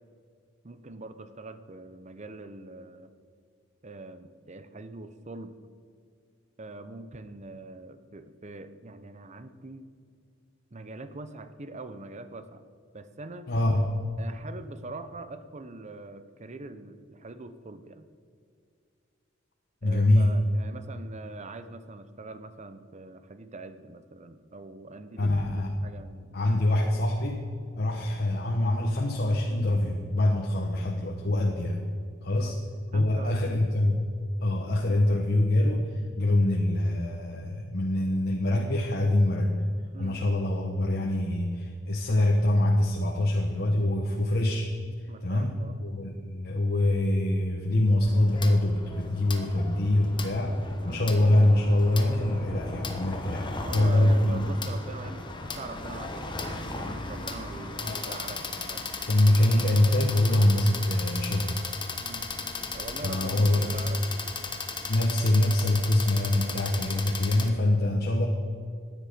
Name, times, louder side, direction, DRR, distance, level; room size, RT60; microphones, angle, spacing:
voice 1, 0.6-3.1 3.8-5.6 6.6-9.9 10.7-12.6 12.9-13.5 14.2-18.0 19.8-26.3 26.6-26.9 32.3-32.6 32.9-33.8 39.9-40.2 45.1-45.8 50.8-51.2 53.5-58.4 58.7-58.8 62.0-62.3 62.7-64.2, right 2 dB, 35° right, 11 dB, 0.8 m, -43 dB
voice 2, 13.5-13.9 19.8-20.4 25.2-25.7 26.3-27.4 27.8-31.8 32.2-32.6 32.9-34.0 34.4-35.9 36.2-39.5 40.0-44.7 45.2-50.6 50.8-53.5 53.7-54.5 57.8-58.1 59.1-61.6 63.0-63.7 64.9-68.3, left 1 dB, 55° left, 1 dB, 1.1 m, -24 dB
sound 1, 48.0-67.5, left 3 dB, 25° left, 1.2 m, -36 dB
16.5 x 10.5 x 5.1 m, 2.2 s
head